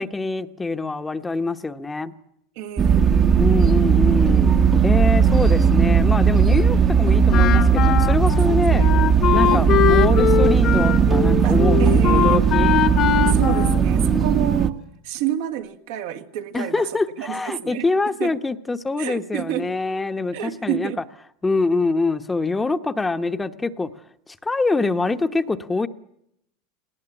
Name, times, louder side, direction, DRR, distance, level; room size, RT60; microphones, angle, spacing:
voice 1, 0.0-2.1 3.4-4.5 4.8-8.8 9.3-12.8 16.5-20.9 21.4-23.9 24.4-25.9, left 3 dB, 15° left, 1.1 m, -24 dB
voice 2, 2.6-3.0 7.0-7.3 8.4-8.9 9.4-9.8 11.4-12.5 13.3-16.9 17.2-17.8 18.2-18.4 19.0-19.8 20.3-21.0, right 12 dB, 75° right, 1.8 m, -29 dB
sound 1, 2.8-14.7, right 6 dB, 30° right, 1.1 m, -17 dB
Wind instrument woodwind instrument, 7.3-14.5, left 11 dB, 45° left, 1.5 m, -22 dB
19.0 x 18.0 x 9.9 m
supercardioid pair, 115°, 0 cm